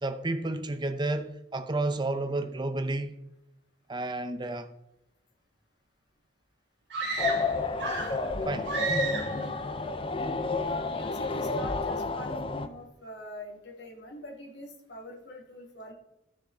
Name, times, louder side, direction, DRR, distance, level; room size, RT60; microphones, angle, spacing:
voice 1, 0.0-3.2 3.9-4.7 8.4-8.8, right 2 dB, 25° right, 0.7 m, -31 dB
sound 1, 6.9-8.3 8.6-9.4, right 3 dB, 65° right, 2.3 m, -32 dB
sound 2, 7.2-12.7, left 3 dB, 30° left, 0.6 m, -30 dB
voice 2, 10.6-15.9, left 1 dB, 60° left, 2.2 m, -45 dB
13.0 x 6.4 x 3.7 m
head